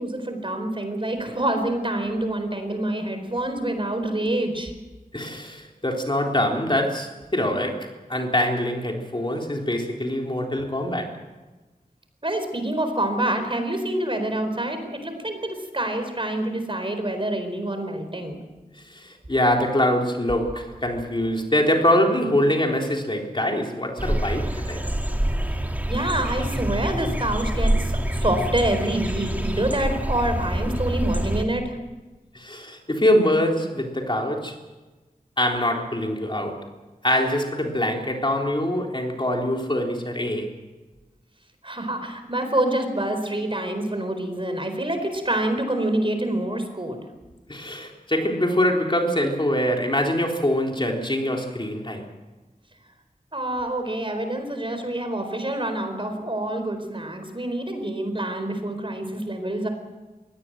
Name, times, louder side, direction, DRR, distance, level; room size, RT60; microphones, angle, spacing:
voice 1, 0.0-4.7 12.2-18.4 25.9-31.7 41.6-47.0 53.3-59.7, right 1 dB, 35° right, 7 dB, 4.3 m, -27 dB
voice 2, 5.1-11.2 18.9-24.8 32.3-34.6 35.4-36.6 37.0-40.5 47.5-52.1, left 1 dB, 35° left, 1 dB, 3.6 m, -24 dB
sound 1, 24.0-31.4, right 1 dB, 10° right, 2.4 m, -26 dB
22.5 x 17.5 x 7.7 m, 1.2 s
wide cardioid pair, 55°, 15 cm